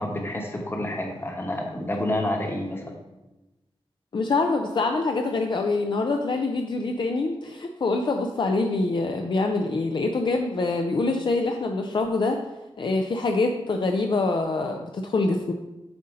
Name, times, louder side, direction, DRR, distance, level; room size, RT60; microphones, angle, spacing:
voice 1, 0.0-3.0, left 1 dB, 25° left, 1 dB, 1.1 m, -29 dB
voice 2, 4.1-12.4 12.8-15.5, left 3 dB, 55° left, 3 dB, 0.5 m, -25 dB
7.6 x 2.8 x 5.0 m, 1.0 s
wide cardioid pair, 100°, 10 cm